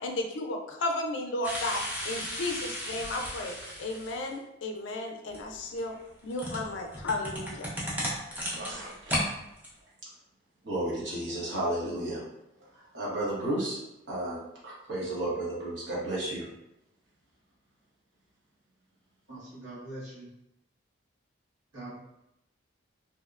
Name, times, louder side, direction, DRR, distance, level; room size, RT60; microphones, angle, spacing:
voice 1, 0.0-3.5 3.8-5.9 6.2-7.7, left 2 dB, 65° left, 3 dB, 0.4 m, -33 dB
sound 1, 1.4-4.3 5.3-9.3 9.6-9.7, equal, 10° right, 0.4 m, -35 dB
voice 2, 8.6-9.2 10.6-12.2 12.9-13.8 14.1-16.5, right 1 dB, 60° right, -6 dB, 0.9 m, -33 dB
voice 3, 19.3-20.3 21.7-22.0, right 1 dB, 90° right, -8 dB, 1.3 m, -42 dB
2.8 x 2.1 x 2.3 m, 0.85 s
head